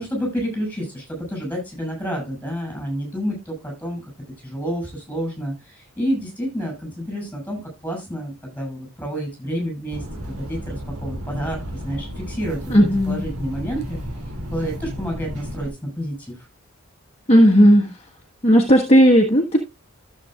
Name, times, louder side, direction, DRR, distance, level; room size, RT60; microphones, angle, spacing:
voice 1, 0.0-4.0 4.4-12.7 13.1-14.0 14.5-16.3, equal, 10° left, 6.5 m, -29 dB
sound 1, 9.9-15.7, equal, 85° right, 2.5 m, -33 dB
voice 2, 12.7-13.2 17.3-18.0 18.4-19.6, equal, 30° left, 1.4 m, -14 dB
14.0 x 7.7 x 2.4 m
head